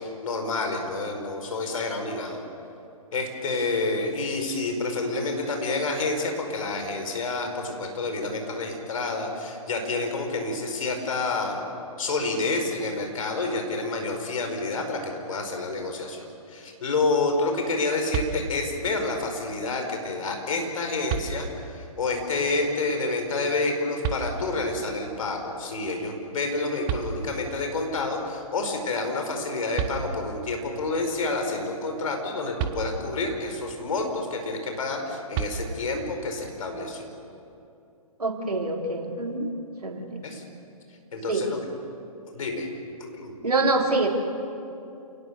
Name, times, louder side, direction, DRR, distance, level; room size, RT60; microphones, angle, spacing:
voice 1, 0.0-2.4 3.1-11.6 12.0-37.1 40.2-40.4 41.1-41.6 42.3-42.7 43.0-43.4, left 3 dB, 65° left, 4 dB, 5.2 m, -29 dB
sound 1, 18.1-18.9 20.4-20.5 21.1-21.8 24.0-24.8 26.5-26.6 26.9-27.7 29.4-29.5 29.8-30.5 32.6-33.4 35.3-36.1, right 8 dB, 30° right, 1.4 m, -32 dB
voice 2, 38.2-39.5 39.8-40.2 41.3-41.5 43.4-44.1, right 2 dB, 90° right, 1 dB, 3.7 m, -25 dB
29.0 x 19.0 x 6.8 m, 2.6 s
hypercardioid pair, 135°, 19 cm